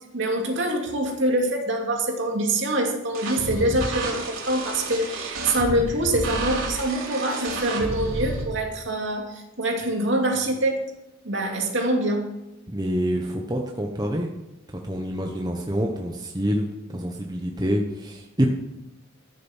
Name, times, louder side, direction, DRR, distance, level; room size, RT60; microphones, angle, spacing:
voice 1, 0.1-10.8 11.2-12.3, right 1 dB, 60° right, 1 dB, 2.7 m, -25 dB
sound 1, 3.1-8.4, right 2 dB, 80° right, 3.6 m, -31 dB
voice 2, 12.7-14.3 14.7-18.5, equal, 20° right, 1 dB, 1.1 m, -27 dB
14.5 x 7.0 x 7.3 m, 0.92 s
head